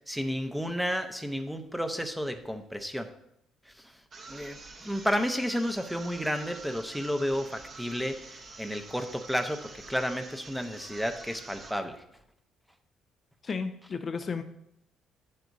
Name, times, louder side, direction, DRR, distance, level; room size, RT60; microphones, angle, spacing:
voice 1, 0.0-3.1 4.3-12.0, equal, ahead, 7 dB, 0.7 m, -32 dB
sound 1, 4.1-11.9, right 3 dB, 35° right, 1.0 m, -47 dB
voice 2, 13.4-14.4, left 5 dB, 35° left, 7 dB, 0.5 m, -33 dB
10.5 x 7.6 x 2.7 m, 0.76 s
cardioid pair, 135°, 0 cm